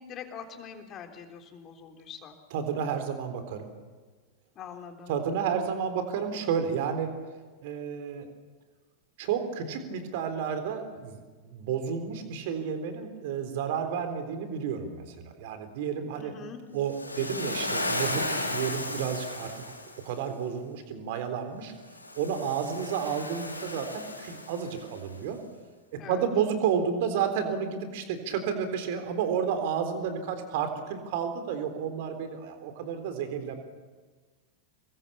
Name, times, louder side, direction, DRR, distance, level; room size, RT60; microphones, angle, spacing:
voice 1, 0.0-2.4 4.6-5.1 16.2-16.6 26.0-26.3, left 7 dB, 30° left, 4 dB, 3.6 m, -43 dB
voice 2, 2.5-3.6 5.1-7.1 7.6-8.3 9.2-16.3 16.7-19.6 20.0-21.7 22.2-25.4 26.1-33.5, right 7 dB, 50° right, 8 dB, 3.7 m, -31 dB
Waves surf, 16.9-20.1 21.9-25.0, left 2 dB, 85° left, 3.0 m, -34 dB
26.5 x 22.0 x 7.3 m, 1.4 s
figure-of-eight pair, 90°, 0 cm